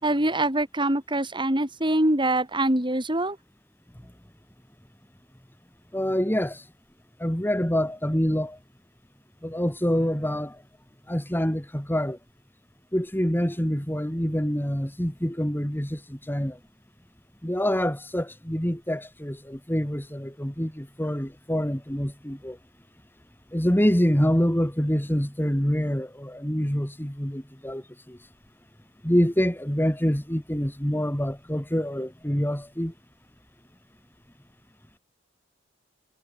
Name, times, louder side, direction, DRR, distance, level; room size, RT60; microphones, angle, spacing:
voice 1, 0.0-3.4, right 1 dB, 25° right, 6.3 m, -24 dB
voice 2, 5.9-6.7 7.2-8.6 9.4-10.6 11.1-12.2 12.9-16.6 17.4-22.6 23.5-28.2 29.0-32.9, equal, 10° left, 3.2 m, -26 dB
head